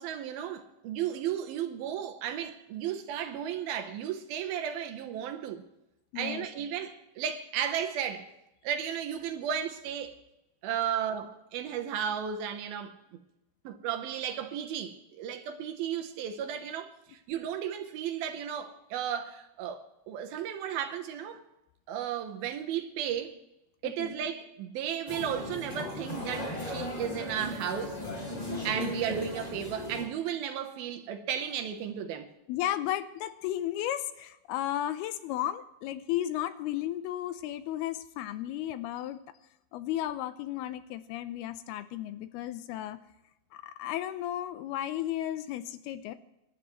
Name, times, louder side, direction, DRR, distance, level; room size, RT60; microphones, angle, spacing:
voice 1, 0.0-5.6 6.2-8.3 8.6-10.2 10.6-13.2 13.6-21.4 21.9-23.4 23.8-28.0 28.6-32.3, right 9 dB, 75° right, 2.8 m, -34 dB
voice 2, 6.1-6.5 23.8-24.2 28.6-29.0 32.5-39.2 39.7-43.0 43.5-46.1, left 12 dB, 85° left, 2.7 m, -34 dB
sound 1, 25.1-30.1, left 1 dB, 25° left, 0.8 m, -36 dB
26.5 x 11.0 x 3.2 m
omnidirectional pair, 4.5 m